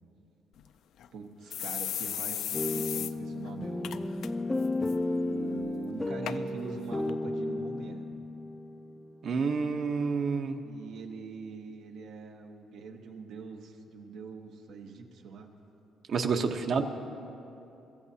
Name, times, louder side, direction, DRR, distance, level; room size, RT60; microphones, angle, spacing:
sound 1, 0.6-0.7 1.0-1.1 1.5-3.1 3.5-3.6 3.8-4.3 4.6-4.9 5.6-5.7 6.3-6.4 7.1-7.2, left 10 dB, 70° left, 0.4 m, -35 dB
voice 1, 1.1-4.1 5.2-8.0 10.6-15.5, right 4 dB, 80° right, 3 dB, 1.3 m, -43 dB
sound 2, 2.5-9.5, left 2 dB, 15° left, 0.4 m, -33 dB
voice 2, 9.2-10.6 16.1-16.8, right 5 dB, 50° right, 6 dB, 0.9 m, -28 dB
24.5 x 14.5 x 2.8 m, 2.9 s
cardioid pair, 140°, 0 cm